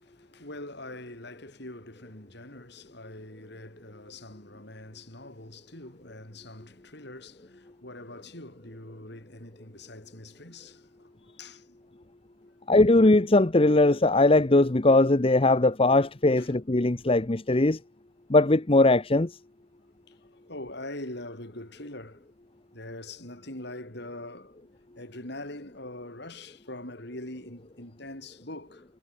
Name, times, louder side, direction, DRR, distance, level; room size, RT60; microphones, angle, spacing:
voice 1, 0.0-11.1 11.4-11.8 16.4-16.5 20.1-22.3 22.7-24.6 24.9-28.8, left 1 dB, 55° left, 7.4 m, -43 dB
voice 2, 12.7-17.8 18.3-19.4, left 2 dB, 30° left, 0.8 m, -20 dB
head